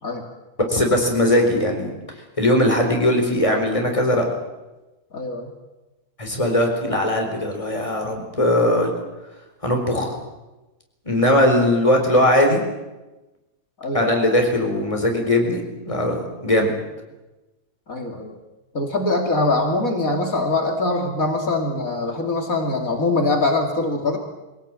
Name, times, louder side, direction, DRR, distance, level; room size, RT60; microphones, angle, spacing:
voice 1, 0.7-1.9 2.4-4.3 6.2-8.9 9.6-10.1 11.0-12.6 13.9-16.7, left 1 dB, 20° left, 2 dB, 4.4 m, -19 dB
voice 2, 5.1-5.5 13.8-14.1 17.9-18.3 18.7-24.2, left 2 dB, 55° left, 3 dB, 3.1 m, -23 dB
24.0 x 17.0 x 9.0 m, 1.1 s
omnidirectional pair, 1.7 m